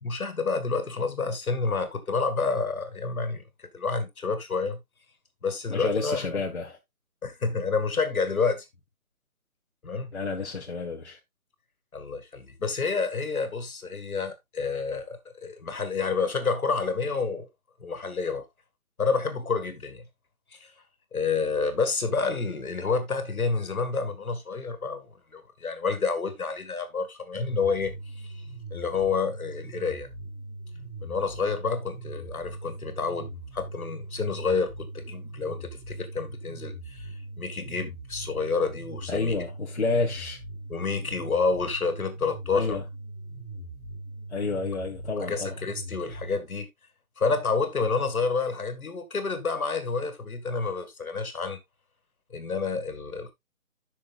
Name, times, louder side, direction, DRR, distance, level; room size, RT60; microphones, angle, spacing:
voice 1, 0.0-4.8 5.4-6.4 7.2-8.7 9.8-10.1 11.9-17.5 17.8-18.5 19.0-20.1 20.5-20.7 21.1-28.4 28.7-30.1 31.0-39.3 40.7-42.8 45.3-46.7 47.2-51.6 52.3-53.3, left 4 dB, 75° left, 2.2 m, -29 dB
voice 2, 5.7-6.8 10.1-11.2 39.1-40.4 42.5-42.8 44.3-45.5, left 3 dB, 50° left, 1.5 m, -30 dB
sound 1, 27.3-46.3, right 2 dB, ahead, 1.5 m, -40 dB
11.0 x 6.3 x 2.5 m
hypercardioid pair, 180°, 43 cm